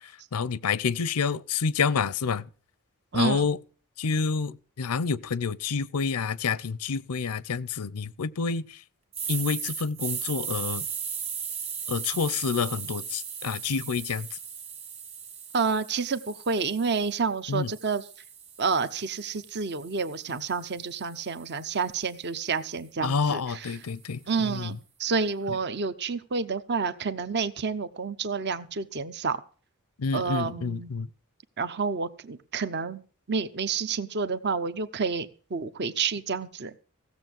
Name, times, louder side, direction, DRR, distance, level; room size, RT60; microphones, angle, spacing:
voice 1, 0.3-2.4 3.1-3.6 4.0-8.6 9.3-10.9 11.9-14.3 17.5-17.7 23.0-24.7 30.0-31.1, left 5 dB, 90° left, 0.6 m, -28 dB
voice 2, 3.1-3.5 15.5-18.1 18.6-23.7 24.3-29.4 30.1-30.9 31.6-33.0 33.3-36.7, right 5 dB, 50° right, 0.8 m, -29 dB
sound 1, 9.1-17.2 17.7-21.9, right 7 dB, 30° right, 1.7 m, -38 dB
16.0 x 7.2 x 7.7 m
head